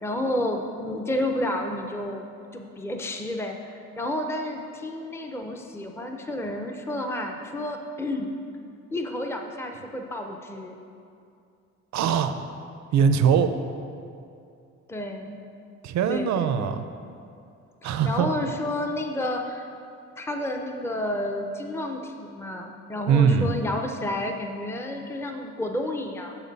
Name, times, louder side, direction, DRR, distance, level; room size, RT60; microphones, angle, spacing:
voice 1, 0.0-2.3 2.5-8.3 8.9-10.8 14.9-15.4 16.1-16.8 17.8-19.6 20.2-26.4, left 1 dB, 10° left, 3 dB, 0.6 m, -30 dB
voice 2, 11.9-12.3 12.9-13.5 15.8-16.8 17.8-18.5 23.1-23.5, right 7 dB, 65° right, 9 dB, 0.6 m, -21 dB
7.3 x 6.8 x 4.0 m, 2.5 s
cardioid pair, 90°, 30 cm